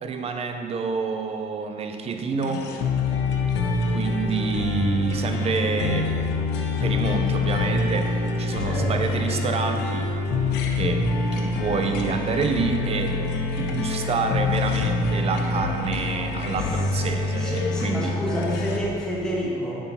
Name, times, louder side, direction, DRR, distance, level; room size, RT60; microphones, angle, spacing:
voice 1, 0.0-2.7 3.9-6.1 6.8-10.1 10.7-11.1 11.3-13.2 13.6-18.2, right 5 dB, 35° right, 6 dB, 0.5 m, -28 dB
sound 1, 2.4-18.8, left 3 dB, 85° left, 0.6 m, -25 dB
voice 2, 8.6-8.9 16.9-17.0 17.4-19.7, equal, 5° left, -6 dB, 1.3 m, -29 dB
7.1 x 5.4 x 2.8 m, 2.5 s
cardioid pair, 110°, 17 cm